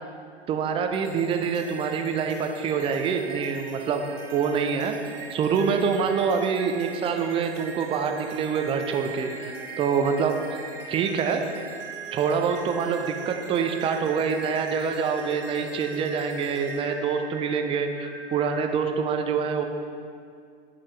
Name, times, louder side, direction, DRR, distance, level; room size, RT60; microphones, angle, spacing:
voice 1, 0.5-5.0 5.3-10.6 10.9-11.4 12.1-19.6, right 6 dB, 15° right, 5 dB, 0.4 m, -26 dB
sound 1, 0.9-18.6, right 4 dB, 50° right, 1.2 m, -40 dB
8.9 x 5.5 x 3.2 m, 2.3 s
hypercardioid pair, 105°, 35 cm